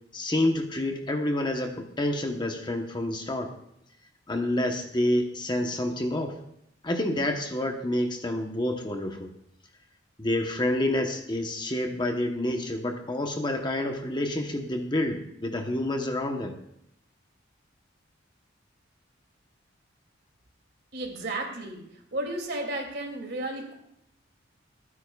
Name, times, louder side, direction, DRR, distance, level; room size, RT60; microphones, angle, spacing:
voice 1, 0.1-3.5 4.3-6.3 6.8-9.3 10.2-16.6, left 1 dB, 25° left, 4 dB, 1.0 m, -28 dB
voice 2, 20.9-21.8 22.1-23.7, right 1 dB, 55° right, 2 dB, 2.6 m, -33 dB
27.5 x 9.7 x 2.4 m, 0.76 s
head